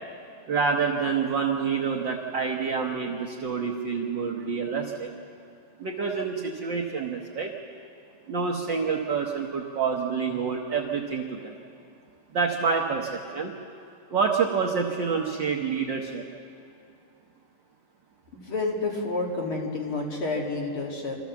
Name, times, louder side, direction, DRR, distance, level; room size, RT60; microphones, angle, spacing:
voice 1, 0.5-5.1 5.8-7.5 8.3-11.5 12.3-13.5 14.1-16.2, right 5 dB, 70° right, 1 dB, 1.0 m, -27 dB
voice 2, 18.3-21.2, left 3 dB, 45° left, -1 dB, 2.8 m, -29 dB
26.5 x 14.5 x 7.2 m, 2.5 s
omnidirectional pair, 3.7 m